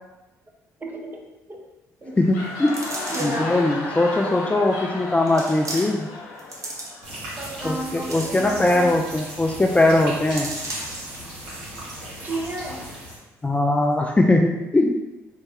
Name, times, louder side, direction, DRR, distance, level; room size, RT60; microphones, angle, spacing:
voice 1, 0.8-1.6 2.0-2.2 3.1-3.7 4.2-4.3 7.4-9.0 12.2-12.8, right 2 dB, 25° right, 1 dB, 0.8 m, -32 dB
sound 1, 2.0-7.6, left 3 dB, 80° left, 0.7 m, -34 dB
voice 2, 2.2-2.7 3.2-6.1 7.6-10.5 13.4-14.9, left 2 dB, 15° left, 1 dB, 0.4 m, -20 dB
sound 2, 2.7-3.5 4.3-4.4 5.3-6.1 6.4-7.2 7.7-8.9 9.2-9.3 9.6-9.8 10.3-11.2 11.6-11.7, right 2 dB, 40° right, 1.0 m, -35 dB
sound 3, 7.0-13.2, right 1 dB, 75° right, 1.4 m, -37 dB
4.1 x 2.1 x 3.4 m, 1.0 s
hypercardioid pair, 50°, 8 cm